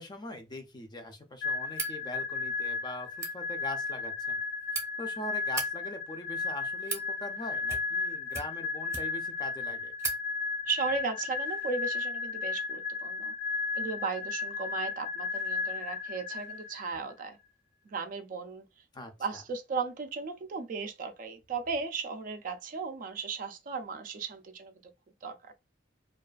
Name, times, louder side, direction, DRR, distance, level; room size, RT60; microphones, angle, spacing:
voice 1, 0.0-4.4 5.0-9.9 18.9-19.1, left 1 dB, 25° left, 0.4 m, -42 dB
sound 1, 1.4-17.0, left 5 dB, 75° left, 0.6 m, -34 dB
sound 2, 1.7-2.0 3.0-3.3 4.3-4.8 5.4-5.7 6.5-7.1 7.6-8.0 8.3-9.3 9.6-9.7 10.0-10.2, right 4 dB, 15° right, 0.7 m, -37 dB
voice 2, 10.7-13.3 13.8-17.4 17.9-18.6 19.2-24.7 25.2-25.5, right 4 dB, 45° right, 0.3 m, -36 dB
2.3 x 2.3 x 2.3 m
head